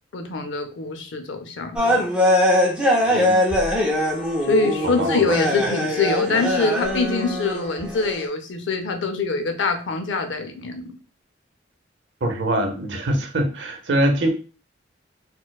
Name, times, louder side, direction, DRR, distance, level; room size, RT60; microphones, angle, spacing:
voice 1, 0.1-2.1 4.4-11.0, left 3 dB, 85° left, 6 dB, 0.6 m, -24 dB
sound 1, 1.8-8.2, left 1 dB, 5° right, 0.6 m, -21 dB
voice 2, 4.8-5.4 12.2-14.3, right 1 dB, 75° right, 4 dB, 0.8 m, -23 dB
4.2 x 2.2 x 2.3 m, 0.36 s
head